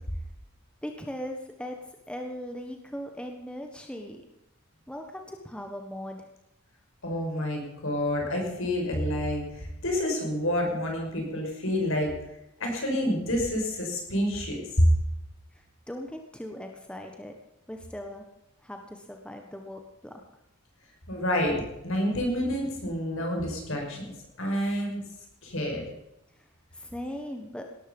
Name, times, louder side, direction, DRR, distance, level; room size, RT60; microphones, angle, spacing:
voice 1, 0.8-1.8 2.1-4.2 4.9-6.3 15.5-17.3 17.7-18.3 18.6-20.2 26.7-27.7, equal, 5° left, 3 dB, 1.4 m, -39 dB
voice 2, 7.0-12.1 12.6-14.9 21.1-21.6 21.8-25.0 25.4-25.8, left 1 dB, 60° left, 2 dB, 5.8 m, -28 dB
18.5 x 13.5 x 5.4 m, 0.89 s
head